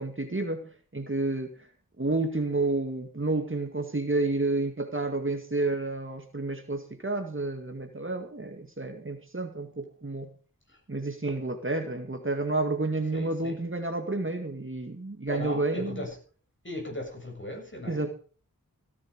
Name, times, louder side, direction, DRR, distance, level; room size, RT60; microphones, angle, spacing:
voice 1, 0.0-1.5 2.0-10.3 10.9-16.0 17.9-18.1, right 2 dB, 35° right, 6 dB, 2.0 m, -30 dB
voice 2, 13.1-13.6 15.3-16.2 16.6-18.1, left 1 dB, 35° left, 2 dB, 7.3 m, -37 dB
16.5 x 10.5 x 5.2 m, 0.40 s
wide cardioid pair, 45°, 35 cm